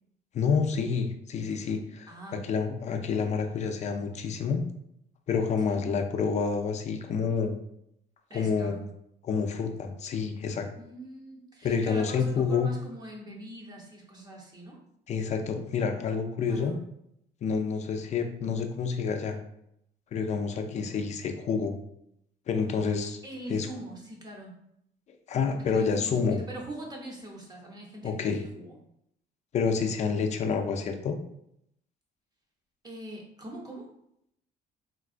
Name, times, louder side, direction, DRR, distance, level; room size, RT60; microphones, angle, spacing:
voice 1, 0.3-2.1 2.4-4.6 5.3-7.5 8.3-8.8 9.2-10.7 11.6-12.7 15.1-16.8 17.4-19.4 20.1-21.7 22.5-23.2 23.5-23.7 25.3-26.4 28.0-28.4 29.5-31.2, left 5 dB, 45° left, 6 dB, 0.4 m, -28 dB
voice 2, 2.1-2.5 5.7-5.8 8.3-8.8 10.8-14.8 16.5-16.8 23.2-24.6 25.7-28.8 32.8-33.9, right 1 dB, 25° right, -1 dB, 0.8 m, -43 dB
3.7 x 2.2 x 2.4 m, 0.76 s
cardioid pair, 110°, 17 cm